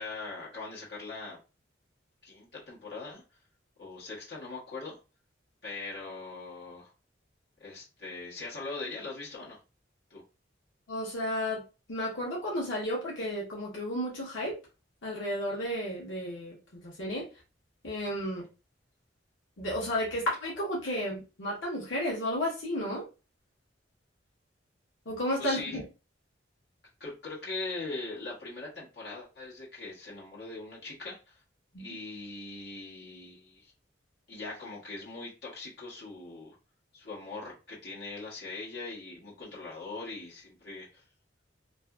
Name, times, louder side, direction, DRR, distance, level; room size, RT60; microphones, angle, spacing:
voice 1, 0.0-1.4 2.2-3.2 3.8-5.0 5.6-6.9 7.6-9.6 10.1-10.2 18.3-18.5 25.4-25.8 27.0-31.4 31.8-33.7 34.3-36.5 36.9-41.0, left 3 dB, 60° left, -5 dB, 1.1 m, -41 dB
voice 2, 10.9-11.6 11.9-14.6 15.0-16.6 16.8-17.3 17.8-18.4 19.6-23.0 25.1-25.8 31.7-31.8, equal, 85° left, -4 dB, 0.9 m, -32 dB
2.5 x 2.5 x 2.3 m, 0.30 s
head